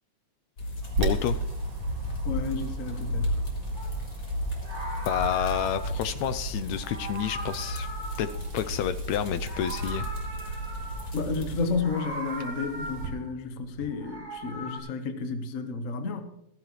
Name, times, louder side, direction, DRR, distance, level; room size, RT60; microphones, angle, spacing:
sound 1, 0.6-11.7, equal, 35° left, 3.2 m, -34 dB
Wind, 0.8-13.1, right 3 dB, 70° right, 3.4 m, -39 dB
voice 1, 1.0-1.4 5.1-7.9 8.2-8.3 8.5-10.1, left 10 dB, 80° left, 11 dB, 1.7 m, -29 dB
voice 2, 2.2-3.4 11.1-16.2, left 4 dB, 55° left, 6 dB, 0.9 m, -31 dB
Meow, 3.7-4.0 4.5-6.0 6.7-9.0 9.3-11.2 11.7-13.3 13.8-14.8, right 1 dB, 15° right, 5.9 m, -39 dB
15.0 x 14.5 x 3.2 m, 0.82 s
omnidirectional pair, 3.4 m